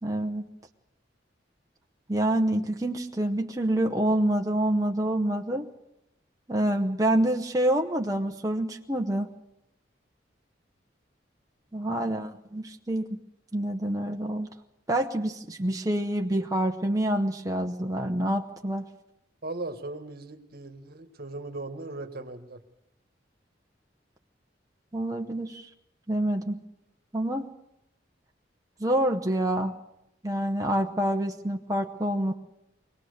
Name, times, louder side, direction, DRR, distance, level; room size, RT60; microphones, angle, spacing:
voice 1, 0.0-0.5 2.1-5.7 6.5-9.3 11.7-13.2 13.5-14.5 14.9-18.8 24.9-25.7 26.1-26.6 27.1-27.4 28.8-29.7 30.2-32.3, right 1 dB, 20° right, 2 dB, 0.9 m, -27 dB
voice 2, 19.4-22.6, right 2 dB, 55° right, 7 dB, 1.6 m, -38 dB
23.0 x 19.0 x 6.6 m, 0.85 s
head